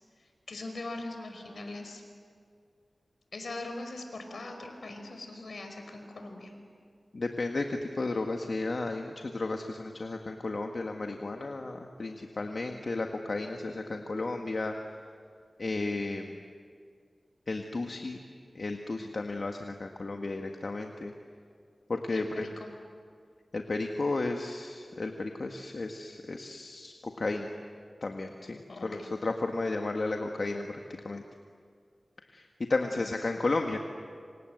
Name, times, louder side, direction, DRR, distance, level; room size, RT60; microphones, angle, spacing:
voice 1, 0.5-2.0 3.3-6.5 22.1-22.7 28.7-29.1 32.9-33.1, left 2 dB, 80° left, 5 dB, 5.2 m, -41 dB
voice 2, 7.1-14.8 15.6-16.4 17.5-18.2 18.6-21.1 21.9-22.5 23.5-27.5 28.0-31.2 32.3-33.8, left 2 dB, 60° left, 3 dB, 1.8 m, -33 dB
28.5 x 26.5 x 7.9 m, 2.1 s
wide cardioid pair, 60°, 0 cm